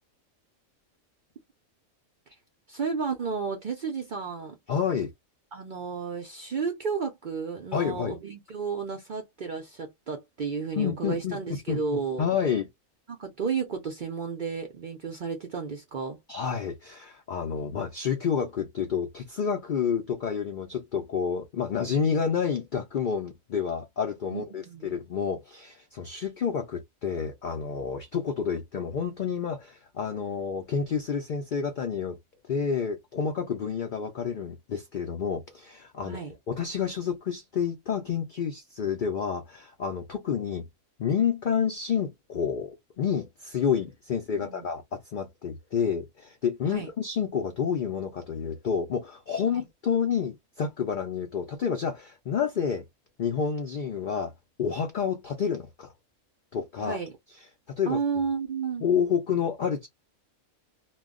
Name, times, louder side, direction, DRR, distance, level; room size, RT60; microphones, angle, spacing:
voice 1, 2.7-4.5 5.5-12.3 13.1-16.2 24.3-25.0 36.0-36.4 44.3-44.6 46.7-46.9 49.5-49.6 56.8-57.1 57.9-58.8, right 5 dB, 60° right, 0.5 m, -32 dB
voice 2, 4.7-5.1 7.7-8.1 10.8-12.7 16.3-32.2 32.5-36.2 36.5-40.6 41.0-52.8 53.2-54.3 54.6-55.9 56.5-57.0 57.8-58.0 58.8-59.9, left 7 dB, 85° left, 0.4 m, -29 dB
2.2 x 2.1 x 3.5 m
omnidirectional pair, 1.5 m